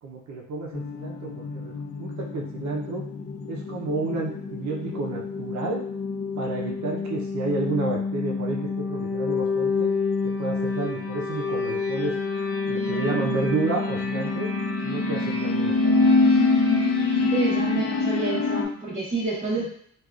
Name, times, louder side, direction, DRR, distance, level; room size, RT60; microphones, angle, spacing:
voice 1, 0.0-3.1 3.5-5.9 6.4-9.9 10.2-12.1 12.7-14.5 14.8-15.9 19.6-19.7, right 3 dB, 65° right, 0 dB, 0.6 m, -31 dB
sound 1, 0.7-18.6, left 3 dB, 50° left, 0.5 m, -26 dB
voice 2, 17.2-19.7, right 2 dB, 25° right, -9 dB, 1.0 m, -28 dB
3.5 x 2.4 x 2.4 m, 0.64 s
cardioid pair, 90°, 30 cm